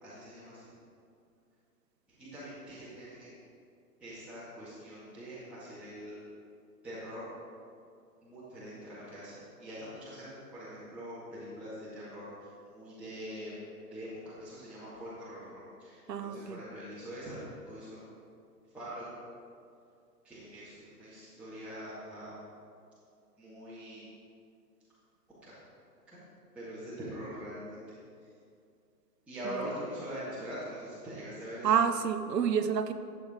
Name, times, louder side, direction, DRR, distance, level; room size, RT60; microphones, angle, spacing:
voice 1, 0.0-0.7 2.2-3.3 4.0-6.2 6.8-7.3 8.2-12.3 12.7-13.5 13.9-18.0 18.7-19.1 20.2-22.3 23.4-24.0 25.4-25.5 26.1-26.2 26.5-27.8 29.3-31.7, equal, 5° right, -14 dB, 2.0 m, -43 dB
voice 2, 16.1-16.6 29.4-29.7 31.6-32.9, right 7 dB, 90° right, 10 dB, 0.9 m, -29 dB
11.5 x 7.8 x 3.8 m, 2.4 s
hypercardioid pair, 140°, 48 cm